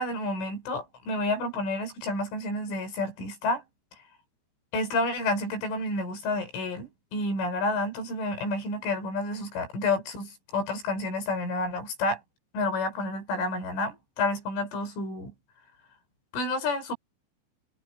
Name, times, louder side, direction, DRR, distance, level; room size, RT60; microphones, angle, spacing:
voice 1, 0.0-3.6 4.7-12.2 12.5-15.3 16.3-16.9, left 2 dB, 85° left, 9.3 m, -30 dB
omnidirectional pair, 5.5 m